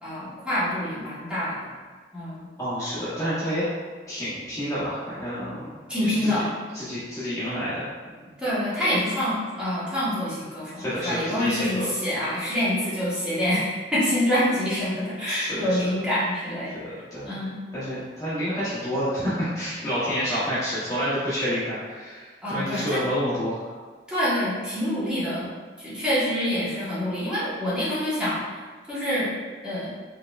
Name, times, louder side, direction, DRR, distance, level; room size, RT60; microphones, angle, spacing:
voice 1, 0.0-1.7 2.1-2.5 5.9-6.5 8.4-17.6 22.4-23.0 24.1-25.5 25.8-28.4 28.9-29.3 29.6-29.9, left 1 dB, 5° right, -11 dB, 1.5 m, -26 dB
voice 2, 2.6-3.6 4.1-5.7 6.0-6.3 6.7-8.1 10.7-11.9 15.3-15.8 16.7-17.4 17.7-23.7, equal, 20° left, -12 dB, 1.0 m, -29 dB
4.5 x 3.4 x 2.5 m, 1.5 s
head